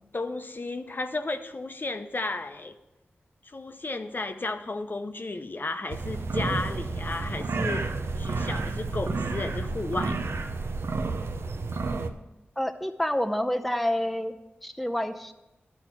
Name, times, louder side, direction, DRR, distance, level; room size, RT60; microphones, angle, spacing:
voice 1, 0.0-2.7 3.4-7.9 8.2-10.2, left 2 dB, 45° left, 7 dB, 0.7 m, -33 dB
sound 1, 5.9-12.1, right 3 dB, 70° right, 0.6 m, -30 dB
voice 2, 12.6-14.4 14.6-15.3, left 1 dB, ahead, 6 dB, 0.6 m, -28 dB
11.0 x 4.4 x 6.0 m, 0.96 s
cardioid pair, 50°, 4 cm